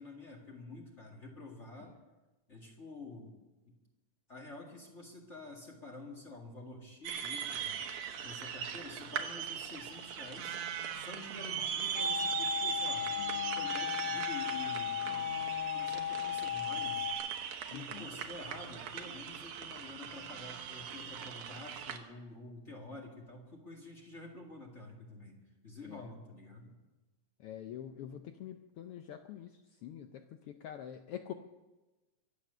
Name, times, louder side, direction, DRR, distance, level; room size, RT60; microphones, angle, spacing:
voice 1, 0.0-1.9 2.5-3.4 3.7-3.8 4.3-7.8 8.2-10.6 10.9-13.1 13.6-15.4 15.7-17.1 17.7-25.4 25.6-26.7, left 2 dB, 25° left, 0 dB, 2.0 m, -49 dB
sound 1, 7.0-22.0, right 8 dB, 90° right, 2.6 m, -39 dB
sound 2, 12.0-17.1, left 10 dB, 60° left, 1.7 m, -36 dB
voice 2, 13.2-13.7 17.7-18.1 25.8-26.1 27.4-31.3, left 10 dB, 85° left, 7 dB, 1.2 m, -46 dB
23.5 x 8.4 x 6.7 m, 1.1 s
omnidirectional pair, 3.4 m